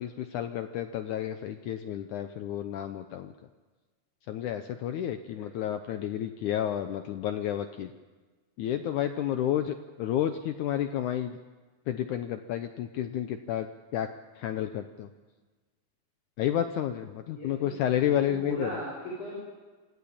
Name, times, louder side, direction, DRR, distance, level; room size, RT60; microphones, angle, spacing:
voice 1, 0.0-3.3 4.3-7.9 8.6-11.4 11.9-13.7 13.9-14.1 14.4-15.1 16.4-18.8, left 11 dB, 90° left, 8 dB, 1.7 m, -31 dB
voice 2, 17.3-19.4, equal, 50° left, -4 dB, 7.1 m, -38 dB
27.0 x 16.5 x 8.6 m, 1.3 s
omnidirectional pair, 4.6 m